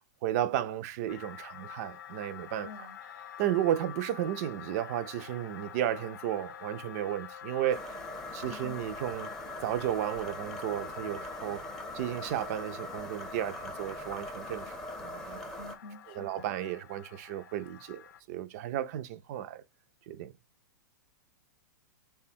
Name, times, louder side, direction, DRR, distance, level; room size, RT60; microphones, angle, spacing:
voice 1, 0.2-2.7 3.4-8.0 8.3-9.3 9.6-11.6 11.9-15.4 16.1-18.0 18.3-19.6 20.1-20.3, right 12 dB, 55° right, 0.4 m, -33 dB
sound 1, 1.1-18.2, left 10 dB, 80° left, 0.6 m, -47 dB
voice 2, 2.6-3.0 8.5-8.8 15.6-16.5, left 4 dB, 45° left, 0.7 m, -47 dB
sound 2, 7.7-15.8, equal, 5° left, 0.6 m, -42 dB
3.3 x 2.2 x 4.3 m
hypercardioid pair, 120°, 10 cm